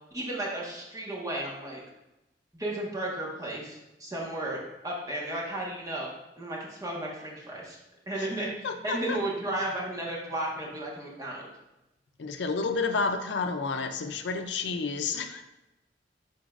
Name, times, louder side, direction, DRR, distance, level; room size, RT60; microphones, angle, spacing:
voice 1, 0.1-1.8 2.5-6.1 6.4-7.8 8.1-8.5 8.8-11.5, right 1 dB, 20° right, -4 dB, 1.4 m, -34 dB
voice 2, 8.6-9.2 12.2-15.4, left 4 dB, 80° left, 8 dB, 0.5 m, -30 dB
11.0 x 4.0 x 2.5 m, 0.94 s
head